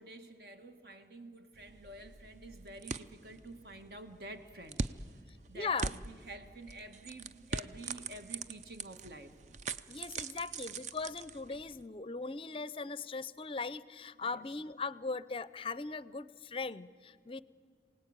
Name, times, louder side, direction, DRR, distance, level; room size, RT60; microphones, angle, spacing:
voice 1, 0.0-4.9 5.2-9.3 10.4-10.5 14.2-14.5, right 1 dB, 60° right, 7 dB, 1.7 m, -49 dB
sound 1, 1.5-11.8, right 4 dB, 40° right, 0.5 m, -43 dB
voice 2, 5.5-5.9 9.9-17.4, left 4 dB, 30° left, 18 dB, 0.5 m, -39 dB
26.0 x 18.0 x 8.9 m, 2.2 s
head